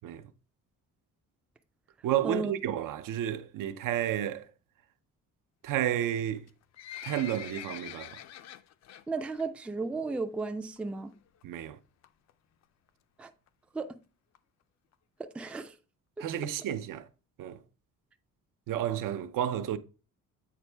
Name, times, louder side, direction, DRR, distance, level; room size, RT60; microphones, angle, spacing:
voice 1, 2.0-4.5 5.6-6.4 7.0-8.2 11.4-11.8 16.2-17.1 17.4-17.6 18.7-19.8, right 11 dB, 75° right, 0.7 m, -31 dB
Livestock farm animals working animals, 6.4-9.0 9.4-9.7 10.0-10.1 10.8-10.9 11.1-11.2 11.4-11.5 12.0-12.3 12.9-13.0 13.2-13.3 13.5-13.6 13.8-13.9 14.3-14.4 14.9-15.0 15.5-15.6, left 11 dB, 55° left, 0.5 m, -44 dB
voice 2, 9.1-11.1 13.2-13.3 13.7-13.9 15.2-15.7 16.2-16.3, right 3 dB, 5° right, 0.3 m, -34 dB
8.4 x 4.5 x 3.3 m
cardioid pair, 155°, 32 cm